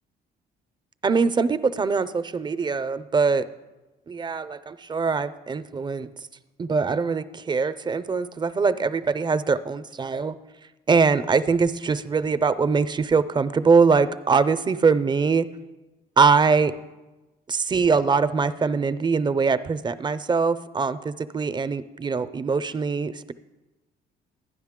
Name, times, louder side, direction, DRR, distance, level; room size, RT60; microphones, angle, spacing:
voice 1, 1.0-3.5 4.1-6.1 6.6-10.3 10.9-15.5 16.2-16.7 17.5-23.3, right 5 dB, 25° right, 13 dB, 0.5 m, -22 dB
12.5 x 10.0 x 3.7 m, 1.1 s
cardioid pair, 95°, 17 cm